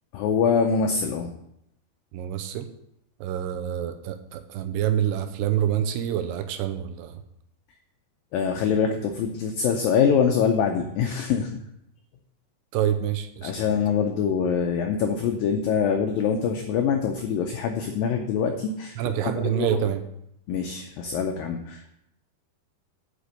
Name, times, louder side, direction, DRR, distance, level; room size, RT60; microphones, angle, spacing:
voice 1, 0.1-1.3 8.3-11.5 13.4-19.0 19.2-19.9 20.5-21.9, left 6 dB, 85° left, 4 dB, 2.0 m, -24 dB
voice 2, 2.1-2.7 3.2-7.2 12.7-13.7 19.0-20.0, right 10 dB, 80° right, 7 dB, 2.6 m, -27 dB
7.8 x 6.2 x 6.6 m, 0.79 s
omnidirectional pair, 4.9 m